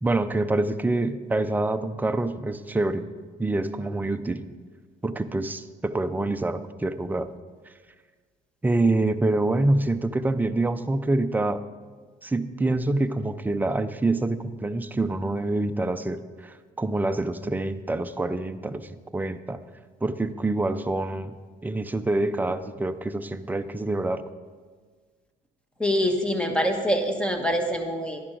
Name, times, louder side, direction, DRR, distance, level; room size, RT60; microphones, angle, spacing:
voice 1, 0.0-3.1 3.4-4.4 5.0-7.3 8.6-11.6 12.2-19.6 20.0-21.3 21.6-24.2, right 2 dB, 10° right, 9 dB, 0.5 m, -26 dB
voice 2, 25.8-28.2, equal, 5° left, 5 dB, 1.2 m, -25 dB
11.0 x 10.5 x 3.8 m, 1.5 s
cardioid pair, 110°, 17 cm